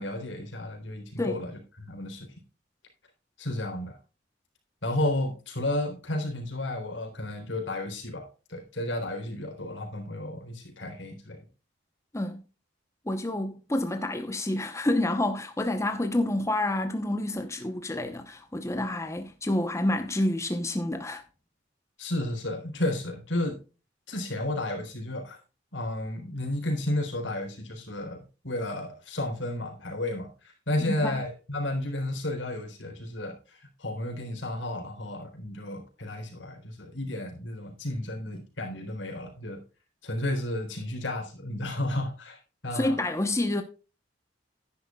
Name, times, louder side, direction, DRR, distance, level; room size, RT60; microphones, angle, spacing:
voice 1, 0.0-2.3 3.4-4.0 4.8-11.4 22.0-23.6 24.1-25.4 25.7-39.6 40.0-43.0, left 1 dB, 85° left, 3.8 m, -32 dB
voice 2, 13.1-21.2 30.9-31.2 42.7-43.6, left 1 dB, 15° left, 0.8 m, -28 dB
11.0 x 10.0 x 2.3 m
head